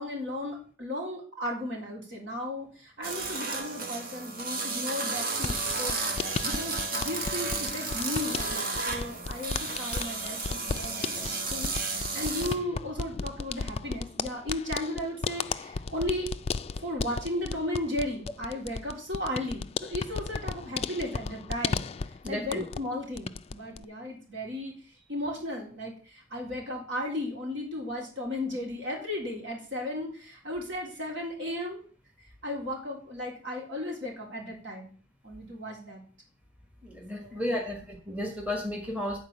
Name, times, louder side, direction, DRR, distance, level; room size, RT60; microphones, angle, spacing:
voice 1, 0.0-16.3 16.8-21.9 22.3-24.7 25.1-31.8 32.4-34.9 35.2-36.0 37.1-37.6, left 1 dB, 70° right, -1 dB, 3.5 m, -35 dB
sound 1, 3.0-12.6, right 3 dB, 50° right, 1.3 m, -33 dB
sound 2, 5.4-22.9 23.2-23.8, left 5 dB, 30° left, 0.3 m, -35 dB
voice 2, 22.2-22.7 36.8-39.2, left 1 dB, 5° right, 1 dB, 1.6 m, -33 dB
9.4 x 4.6 x 7.2 m, 0.42 s
head